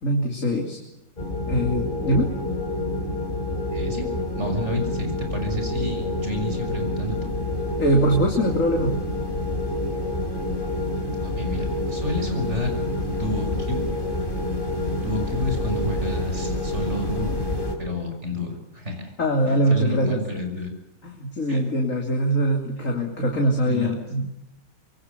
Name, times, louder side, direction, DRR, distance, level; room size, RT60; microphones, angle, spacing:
voice 1, 0.0-0.8 1.5-2.3 7.8-8.9 19.2-20.2 21.0-24.3, right 1 dB, 60° left, 2 dB, 3.5 m, -22 dB
sound 1, 1.2-17.8, left 2 dB, 35° left, 4.6 m, -27 dB
voice 2, 3.7-4.1 4.4-7.3 11.2-12.7 13.2-13.8 15.0-17.4 17.8-19.1 19.5-20.7 21.5-21.6 22.8-23.0 23.6-23.9, left 1 dB, 50° right, 4 dB, 6.7 m, -30 dB
26.5 x 23.0 x 6.9 m, 0.88 s
omnidirectional pair, 1.5 m